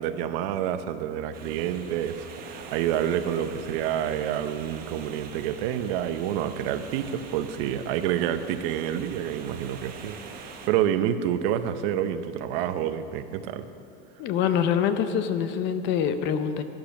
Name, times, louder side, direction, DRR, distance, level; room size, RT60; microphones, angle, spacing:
voice 1, 0.0-13.7, right 10 dB, 65° right, 11 dB, 0.8 m, -28 dB
sound 1, 1.3-10.7, right 5 dB, 30° right, 1.1 m, -44 dB
voice 2, 14.2-16.6, left 8 dB, 35° left, 10 dB, 0.6 m, -25 dB
13.5 x 10.5 x 5.9 m, 2.8 s
cardioid pair, 175°, 30 cm